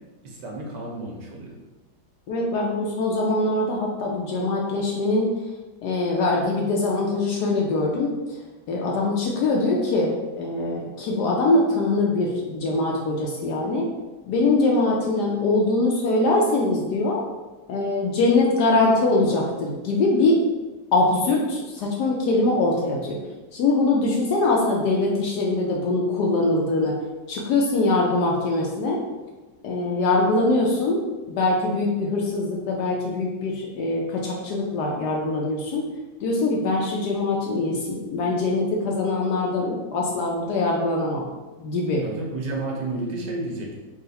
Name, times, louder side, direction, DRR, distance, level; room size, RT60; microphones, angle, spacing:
voice 1, 0.2-1.5 42.0-43.7, right 2 dB, 75° right, -1 dB, 1.4 m, -31 dB
voice 2, 2.3-5.3 5.8-8.1 8.7-13.9 14.3-17.3 17.7-20.4 20.9-23.2 23.5-26.9 27.3-29.0 29.6-31.0 31.3-35.9 36.2-41.2 41.6-42.0, left 2 dB, 75° left, -1 dB, 1.1 m, -23 dB
3.7 x 2.4 x 4.0 m, 1.2 s
omnidirectional pair, 1.9 m